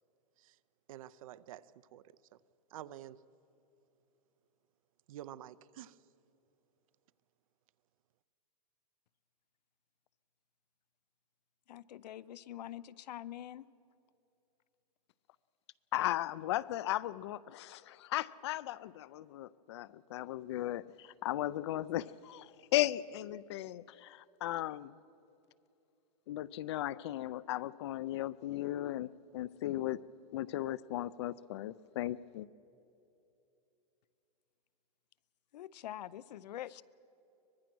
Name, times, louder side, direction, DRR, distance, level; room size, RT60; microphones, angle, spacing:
voice 1, 0.9-2.4 2.7-3.2 5.1-6.0, right 12 dB, 55° right, 18 dB, 0.6 m, -49 dB
voice 2, 11.7-13.7 35.5-36.8, left 12 dB, 85° left, 17 dB, 0.6 m, -45 dB
voice 3, 15.9-24.9 26.3-30.0 30.3-32.5, left 14 dB, 40° left, 19 dB, 0.4 m, -36 dB
24.0 x 20.0 x 6.1 m, 2.9 s
supercardioid pair, 175°, 21 cm